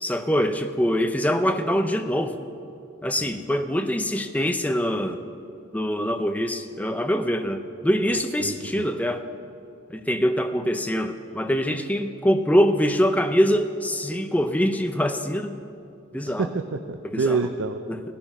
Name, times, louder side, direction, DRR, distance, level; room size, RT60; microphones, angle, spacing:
voice 1, 0.0-2.4 3.0-5.2 5.7-9.2 9.9-15.6 16.1-16.5 17.0-17.4 17.9-18.0, equal, 5° left, 7 dB, 0.6 m, -24 dB
voice 2, 8.4-8.9 16.3-17.8, right 4 dB, 65° right, 8 dB, 0.6 m, -28 dB
17.5 x 10.5 x 6.0 m, 2.6 s
head